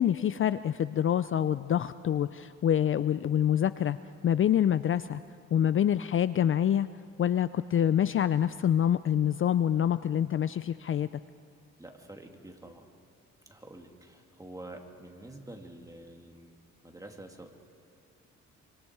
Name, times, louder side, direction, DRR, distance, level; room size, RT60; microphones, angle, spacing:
voice 1, 0.0-4.0 4.2-5.2 5.5-6.9 7.2-11.1, left 9 dB, 45° left, 14 dB, 0.5 m, -26 dB
voice 2, 11.8-12.9 13.5-16.6 16.8-17.5, right 1 dB, 10° right, 2 dB, 2.9 m, -47 dB
27.5 x 25.5 x 4.8 m, 2.4 s
cardioid pair, 90°, 30 cm